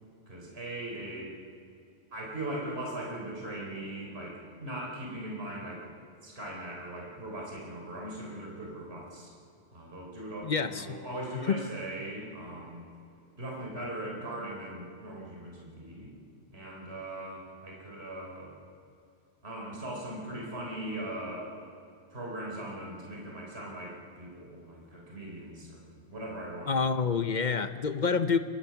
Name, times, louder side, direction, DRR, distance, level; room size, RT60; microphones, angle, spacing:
voice 1, 0.3-1.3 2.1-5.8 6.2-9.3 9.7-12.8 13.4-16.1 16.5-18.5 19.4-21.6 22.1-26.8, right 1 dB, 55° right, -2 dB, 4.1 m, -39 dB
voice 2, 10.4-10.9 11.5-11.6 26.7-28.4, left 5 dB, 45° left, 10 dB, 0.8 m, -27 dB
23.5 x 20.5 x 5.9 m, 2.5 s
omnidirectional pair, 1.3 m